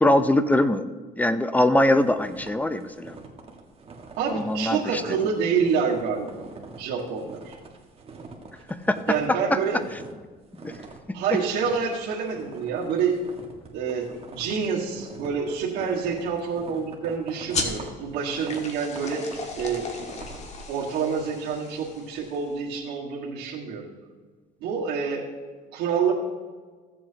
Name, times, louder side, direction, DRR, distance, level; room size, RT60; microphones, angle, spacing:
voice 1, 0.0-0.9 1.2-3.2 4.3-5.0 8.9-9.0 10.6-10.7, left 1 dB, 10° left, 11 dB, 0.6 m, -22 dB
sound 1, 1.9-9.3 9.6-10.2 10.5-20.4, right 4 dB, 35° right, 1.6 m, -44 dB
voice 2, 4.2-6.5 6.8-7.6 9.1-9.8 11.1-13.2 13.7-19.3 19.6-19.9 20.7-23.9 24.6-25.3 25.7-26.1, right 6 dB, 85° right, -6 dB, 1.7 m, -27 dB
sound 2, 17.5-22.6, left 3 dB, 40° left, 1.6 m, -35 dB
16.0 x 7.6 x 2.9 m, 1.5 s
cardioid pair, 110°, 17 cm